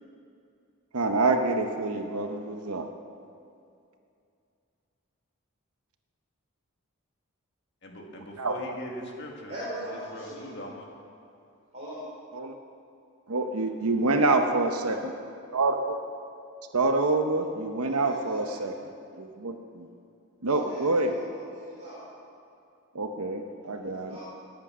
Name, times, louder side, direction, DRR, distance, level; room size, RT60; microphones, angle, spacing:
voice 1, 0.9-2.9 8.1-8.7 12.3-12.5 13.3-15.1 15.5-16.0 16.7-18.8 19.2-19.8 20.4-21.2 22.9-24.2, right 2 dB, 85° right, 5 dB, 0.9 m, -27 dB
voice 2, 7.8-9.6 9.9-10.9, equal, 50° left, 0 dB, 2.0 m, -41 dB
voice 3, 9.5-10.5 11.7-12.0 14.0-15.0 17.8-18.6 20.4-22.0 24.0-24.2, right 1 dB, 30° right, -9 dB, 3.6 m, -41 dB
19.0 x 8.4 x 6.2 m, 2.5 s
head